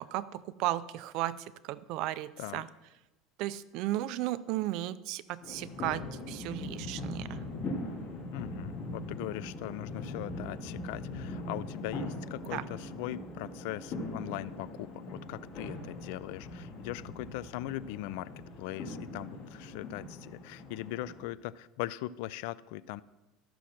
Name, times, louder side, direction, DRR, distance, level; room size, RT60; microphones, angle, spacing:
voice 1, 0.0-2.7 3.4-7.5 12.5-12.6, right 15 dB, 60° right, 16 dB, 0.4 m, -35 dB
sound 1, 5.4-21.2, left 2 dB, 40° left, 2.3 m, -41 dB
voice 2, 8.3-18.3 18.6-23.0, left 15 dB, 70° left, 19 dB, 0.3 m, -40 dB
13.0 x 6.1 x 4.3 m, 1.1 s
supercardioid pair, 130°, 0 cm